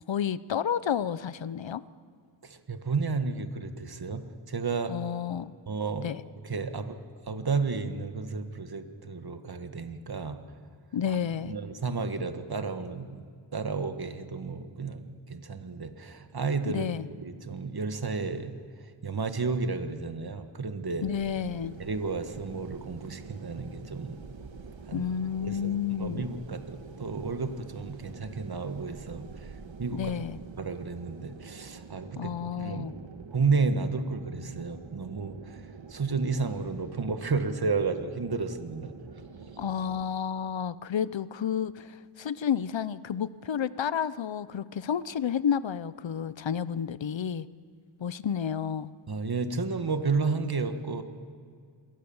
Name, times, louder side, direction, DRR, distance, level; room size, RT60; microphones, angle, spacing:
voice 1, 0.1-1.8 4.9-5.5 6.0-6.2 10.9-11.5 16.7-17.1 21.0-21.8 24.9-26.3 29.9-30.4 32.2-32.9 39.6-47.5 48.0-48.9, left 8 dB, 70° left, 17 dB, 0.8 m, -31 dB
voice 2, 2.4-4.9 5.7-6.1 6.4-7.0 7.3-10.4 11.5-13.2 13.5-18.6 19.0-21.1 21.8-24.2 24.9-25.1 25.4-25.7 26.0-29.3 29.8-30.1 30.6-32.9 33.3-35.6 35.9-38.9 49.1-51.0, right 4 dB, 50° right, 8 dB, 1.7 m, -32 dB
sound 1, 21.0-40.1, right 5 dB, 70° right, 1.7 m, -46 dB
27.5 x 22.0 x 7.2 m, 2.1 s
wide cardioid pair, 85°, 47 cm